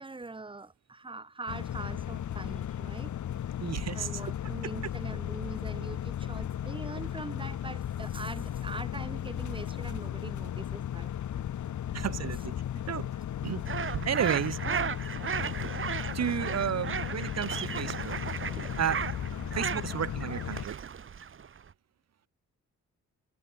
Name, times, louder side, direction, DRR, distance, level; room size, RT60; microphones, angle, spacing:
voice 1, 0.0-3.1 3.9-11.1, right 3 dB, 15° right, 2.6 m, -42 dB
sound 1, 1.5-20.6, left 10 dB, 80° left, 3.3 m, -35 dB
voice 2, 3.6-4.2 4.6-4.7 11.9-12.5 12.9-13.1 13.4-13.6 13.9-14.6 16.1-18.2 18.8-19.0 19.5-20.8, right 9 dB, 60° right, 5.1 m, -32 dB
sound 2, 13.7-21.7, right 7 dB, 45° right, 3.3 m, -35 dB
wide cardioid pair, 170°, 29 cm